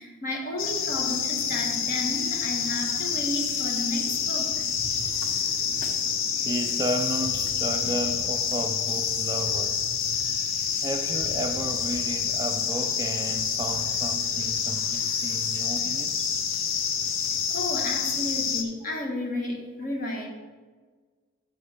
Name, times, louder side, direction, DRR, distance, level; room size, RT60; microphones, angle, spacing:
voice 1, 0.0-4.6 17.5-20.3, left 1 dB, 45° left, 0 dB, 1.5 m, -32 dB
sound 1, 0.6-18.6, left 7 dB, 75° left, 0.8 m, -28 dB
sound 2, 4.5-5.9 6.7-6.9 7.2-8.4 9.0-10.7 11.2-12.6 13.0-13.1 13.4-14.6, right 1 dB, 60° left, 2.1 m, -45 dB
voice 2, 6.4-9.8 10.8-16.3, right 1 dB, 20° right, 5 dB, 0.4 m, -33 dB
6.3 x 5.2 x 6.6 m, 1.4 s
head